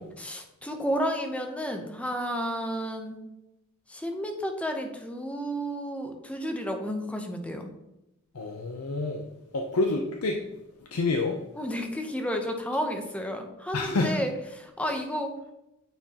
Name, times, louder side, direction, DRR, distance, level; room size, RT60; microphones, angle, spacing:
voice 1, 0.2-3.2 3.9-7.7 11.5-15.4, equal, 5° left, 4 dB, 0.6 m, -32 dB
voice 2, 8.3-9.2 9.5-10.4 10.9-11.4 13.7-14.2, left 3 dB, 90° left, 2 dB, 0.6 m, -27 dB
8.9 x 4.4 x 2.8 m, 0.91 s
head